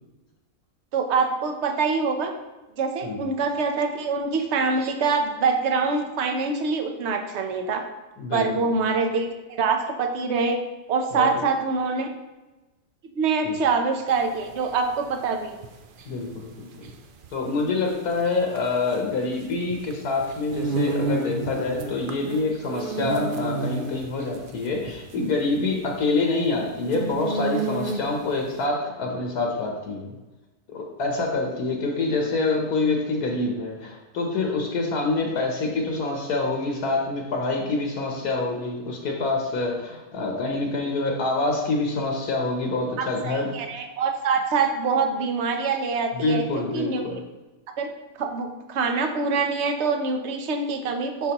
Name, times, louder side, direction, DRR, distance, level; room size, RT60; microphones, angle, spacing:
voice 1, 0.9-2.3 2.8-7.8 8.3-10.6 10.9-12.1 13.1-15.6 43.0-47.2 47.8-47.9 48.2-51.3, right 4 dB, 55° right, 4 dB, 0.9 m, -25 dB
voice 2, 8.2-8.7 11.1-11.4 13.4-13.6 16.1-16.9 17.3-30.1 30.7-43.5 46.1-47.2, left 3 dB, 75° left, 0 dB, 1.4 m, -26 dB
sound 1, 14.1-28.3, right 3 dB, 70° right, 0.5 m, -32 dB
10.5 x 4.1 x 2.9 m, 1.1 s
omnidirectional pair, 1.6 m